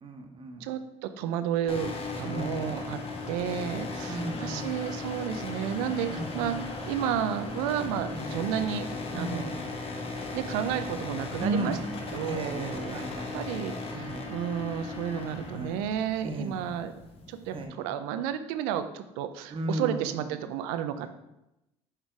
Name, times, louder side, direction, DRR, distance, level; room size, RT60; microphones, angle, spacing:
voice 1, 0.0-0.7 2.2-2.8 4.1-4.7 6.1-6.7 8.1-8.4 9.1-9.6 11.4-11.8 12.2-13.4 13.9-14.2 15.5-15.8 16.2-16.6 17.5-17.8 19.5-20.5 21.0-21.1, right 2 dB, 40° right, 3 dB, 1.3 m, -35 dB
voice 2, 0.6-3.0 3.3-8.9 9.1-9.5 10.3-11.8 12.1-13.0 13.3-16.9 17.3-21.1, right 9 dB, 85° right, 10 dB, 0.5 m, -32 dB
sound 1, 1.7-17.6, left 3 dB, 40° left, 1.3 m, -37 dB
6.4 x 3.9 x 4.6 m, 0.90 s
supercardioid pair, 75°, 14 cm